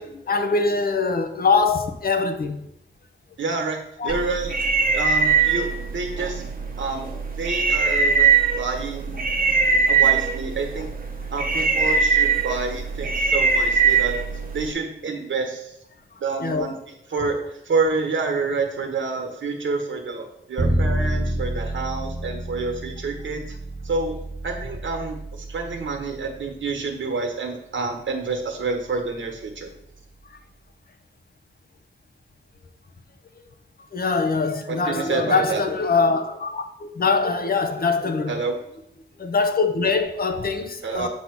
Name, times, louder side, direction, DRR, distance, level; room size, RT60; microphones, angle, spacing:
voice 1, 0.0-2.6 4.0-4.2 16.4-16.7 33.9-38.3 39.2-41.1, left 4 dB, 50° left, 0.7 m, -23 dB
voice 2, 3.4-3.8 4.0-4.5 4.9-5.7 5.9-7.1 7.4-9.3 9.7-10.9 11.3-14.1 14.5-15.7 16.2-16.8 17.1-23.4 23.8-24.2 24.4-29.7 34.7-35.6 38.3-38.5 40.8-41.1, right 4 dB, 80° right, 1.1 m, -28 dB
sound 1, 4.1-14.7, right 5 dB, 45° right, 0.8 m, -21 dB
Bowed string instrument, 20.6-26.8, right 1 dB, 20° left, 1.3 m, -29 dB
7.8 x 2.8 x 5.8 m
wide cardioid pair, 165°, 19 cm